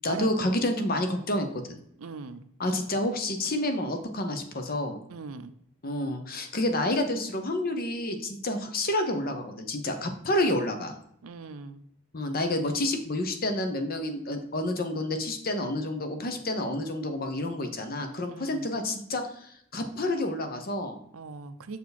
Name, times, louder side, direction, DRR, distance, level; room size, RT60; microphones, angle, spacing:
voice 1, 0.0-1.8 2.6-5.0 5.8-11.0 12.1-21.0, left 1 dB, 45° left, 6 dB, 0.9 m, -29 dB
voice 2, 2.0-2.5 5.1-5.5 11.2-11.8 18.3-18.7 21.1-21.8, right 4 dB, 85° right, 11 dB, 0.6 m, -40 dB
6.7 x 4.6 x 4.1 m, 0.70 s
head